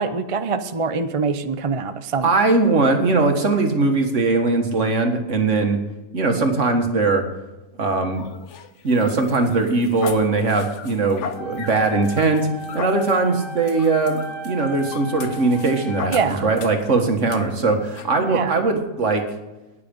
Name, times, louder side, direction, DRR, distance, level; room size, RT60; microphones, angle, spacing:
voice 1, 0.0-2.3 16.1-16.5 18.2-18.7, right 5 dB, 40° right, 10 dB, 0.5 m, -24 dB
voice 2, 2.2-5.8 6.1-7.2 7.8-8.3 8.8-12.5 12.7-19.2, right 3 dB, 60° right, 4 dB, 1.9 m, -20 dB
sound 1, 8.2-16.9 17.3-17.4 17.9-18.1, left 6 dB, 60° left, 1.1 m, -37 dB
sound 2, 11.3-16.3, right 2 dB, 30° left, 4.0 m, -36 dB
19.0 x 6.8 x 5.3 m, 1.1 s
omnidirectional pair, 1.5 m